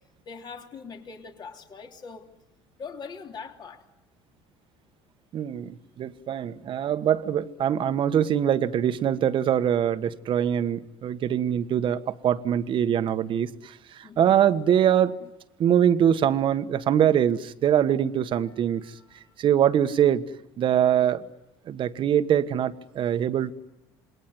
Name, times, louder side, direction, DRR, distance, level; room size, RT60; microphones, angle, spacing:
voice 1, 0.2-2.3 2.8-3.8 14.0-14.3 18.4-19.3, left 5 dB, 40° left, 3 dB, 3.4 m, -42 dB
voice 2, 5.3-13.7 14.2-15.1 15.6-18.8 19.4-20.2 20.6-21.2 21.7-23.5, right 9 dB, 50° right, 10 dB, 1.4 m, -23 dB
27.5 x 20.5 x 9.6 m, 0.99 s
supercardioid pair, 95°, 11 cm